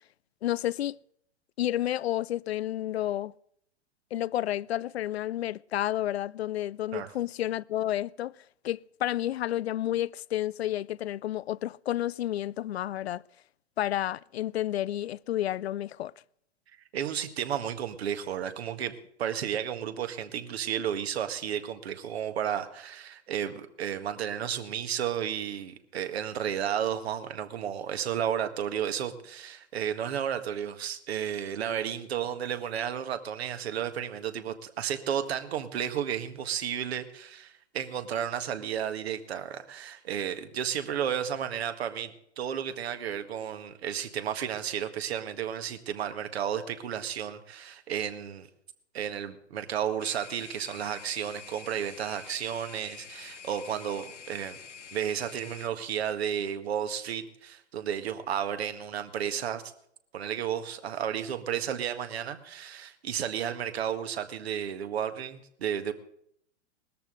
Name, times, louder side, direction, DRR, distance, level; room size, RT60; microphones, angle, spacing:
voice 1, 0.4-1.0 1.6-3.3 4.1-8.3 8.6-13.2 13.8-16.1, left 13 dB, 65° left, 0.4 m, -30 dB
voice 2, 16.9-48.5 48.9-54.6 54.9-59.6 60.1-65.9, right 9 dB, 60° right, 1.7 m, -33 dB
sound 1, 50.0-55.7, left 6 dB, 85° left, 0.9 m, -47 dB
19.5 x 13.5 x 3.9 m
figure-of-eight pair, 105°, 35 cm